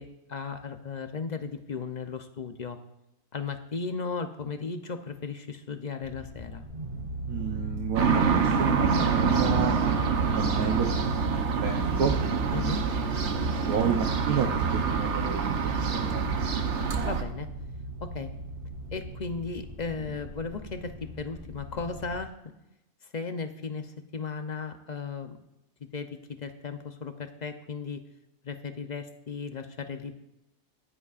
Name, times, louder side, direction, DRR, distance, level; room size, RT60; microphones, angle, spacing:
voice 1, 0.0-2.8 3.3-6.6 12.5-12.8 17.0-17.5 18.0-18.3 18.9-22.3 23.1-25.4 25.9-28.0 28.4-30.2, left 5 dB, 45° left, 7 dB, 0.6 m, -36 dB
sound 1, 6.0-22.2, right 2 dB, 40° right, 2.5 m, -37 dB
voice 2, 7.3-9.8 10.4-11.3 11.6-12.1 13.2-16.3, right 7 dB, 85° right, 1 dB, 1.4 m, -31 dB
sound 2, 8.0-17.2, right 5 dB, 55° right, 1.1 m, -26 dB
15.0 x 11.0 x 2.5 m, 0.88 s
omnidirectional pair, 1.5 m